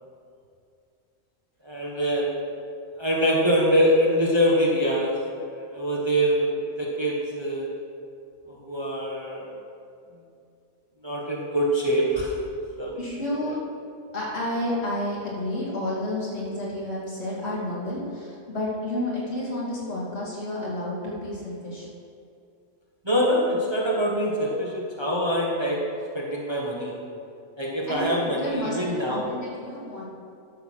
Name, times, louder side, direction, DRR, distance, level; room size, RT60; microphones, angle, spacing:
voice 1, 1.6-2.4 3.0-5.2 5.5-7.7 8.5-9.5 11.0-12.3 12.8-12.9 13.3-13.5 23.0-25.8 26.1-26.9 27.6-29.2, equal, 20° right, -4 dB, 1.4 m, -24 dB
voice 2, 13.0-13.6 14.1-21.9 27.9-30.0, left 1 dB, 50° left, -7 dB, 3.2 m, -30 dB
12.0 x 6.7 x 6.4 m, 2.5 s
omnidirectional pair, 1.4 m